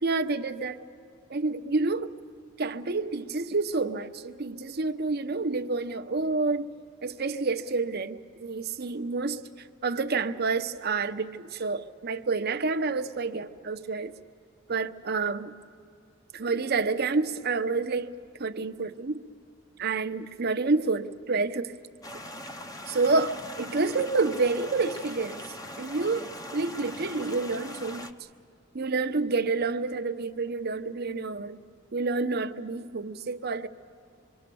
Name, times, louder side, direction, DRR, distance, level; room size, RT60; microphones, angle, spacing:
voice 1, 0.0-0.8 1.3-2.1 2.6-6.7 7.0-14.1 14.7-15.5 16.3-18.1 18.4-19.2 19.8-21.8 22.9-25.4 25.8-28.1 28.7-31.6 31.9-33.7, right 3 dB, 50° right, 0.9 m, -29 dB
sound 1, 22.0-28.1, left 1 dB, 20° left, 0.9 m, -41 dB
26.5 x 23.5 x 7.0 m
head